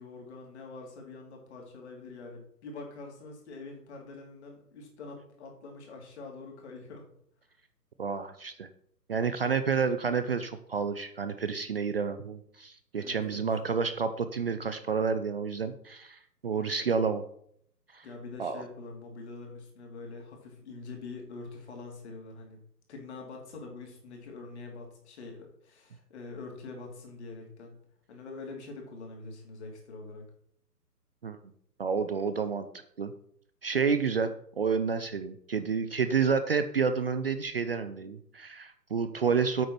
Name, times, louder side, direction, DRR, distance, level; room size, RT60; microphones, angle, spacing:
voice 1, 0.0-7.1 13.0-13.5 18.0-22.6 22.9-27.7 28.1-30.2, left 3 dB, 40° left, 1 dB, 3.4 m, -44 dB
voice 2, 8.0-8.7 9.1-17.2 17.9-18.0 18.4-18.6 31.2-31.4 31.8-32.7 33.0-33.1 33.6-34.3 34.6-39.7, right 5 dB, 40° right, 10 dB, 0.6 m, -29 dB
8.7 x 6.5 x 5.9 m, 0.67 s
figure-of-eight pair, 140°, 48 cm